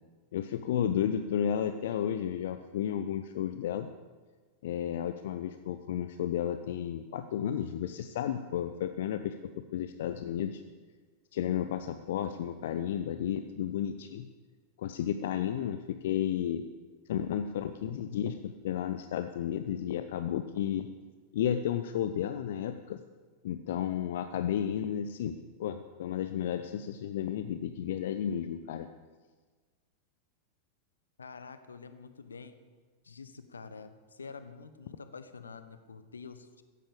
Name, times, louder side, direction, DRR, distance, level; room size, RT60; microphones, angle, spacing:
voice 1, 0.3-3.9 4.6-9.3 9.7-10.6 11.3-14.3 14.8-16.6 17.1-20.9 21.3-23.0 23.4-25.3 25.6-28.9, left 9 dB, 55° left, 10 dB, 0.7 m, -32 dB
voice 2, 31.2-32.6 33.0-36.6, left 5 dB, 75° left, 11 dB, 1.1 m, -47 dB
15.5 x 15.5 x 5.2 m, 1.4 s
figure-of-eight pair, 90°, 0 cm